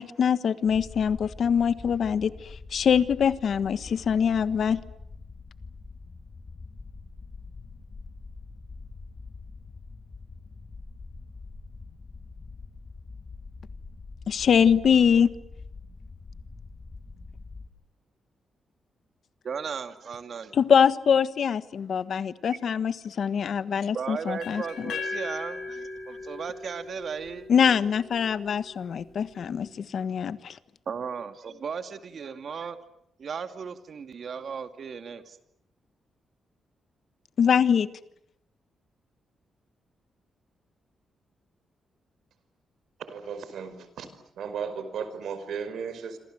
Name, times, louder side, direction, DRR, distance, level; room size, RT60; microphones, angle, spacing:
voice 1, 0.0-4.8 14.3-15.3 20.5-24.9 27.5-30.6 37.4-37.9, left 7 dB, 55° left, 14 dB, 1.4 m, -23 dB
sound 1, 0.6-17.7, left 3 dB, 30° left, 2.6 m, -44 dB
voice 2, 19.4-20.6 23.9-27.5 30.9-32.8 33.2-35.4, right 6 dB, 50° right, 9 dB, 2.5 m, -36 dB
sound 2, 24.4-28.3, left 3 dB, 80° left, 6.5 m, -37 dB
voice 3, 43.0-44.1 44.4-46.2, right 6 dB, 75° right, 11 dB, 5.1 m, -35 dB
27.5 x 26.5 x 7.9 m, 0.75 s
wide cardioid pair, 145°, 0 cm